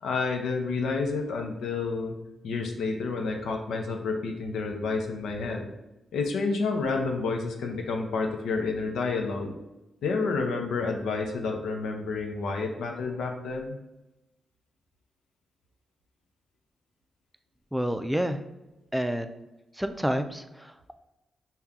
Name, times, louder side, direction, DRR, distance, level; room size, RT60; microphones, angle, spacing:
voice 1, 0.0-2.1 2.4-5.6 6.1-9.5 10.0-13.8, left 4 dB, 85° left, 3 dB, 0.6 m, -29 dB
voice 2, 17.7-18.4 18.9-19.4 19.7-20.9, equal, 5° right, 8 dB, 0.4 m, -29 dB
5.5 x 2.3 x 3.6 m, 0.98 s
cardioid pair, 65°, 0 cm